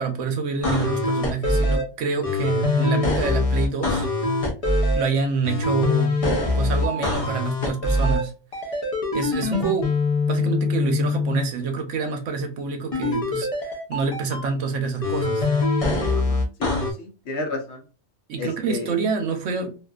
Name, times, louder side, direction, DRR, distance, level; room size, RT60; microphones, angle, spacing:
voice 1, 0.0-4.1 4.9-6.2 6.5-8.3 9.1-9.9 10.3-15.5 18.3-19.8, right 5 dB, 70° right, 1.0 m, -27 dB
sound 1, 0.6-1.8 2.2-5.0 5.4-8.2 8.5-11.4 12.9-14.4 15.0-16.9, left 2 dB, 45° left, 0.4 m, -23 dB
voice 2, 16.1-17.8 18.4-18.9, left 3 dB, 65° left, 0.9 m, -33 dB
2.5 x 2.5 x 2.2 m
omnidirectional pair, 1.4 m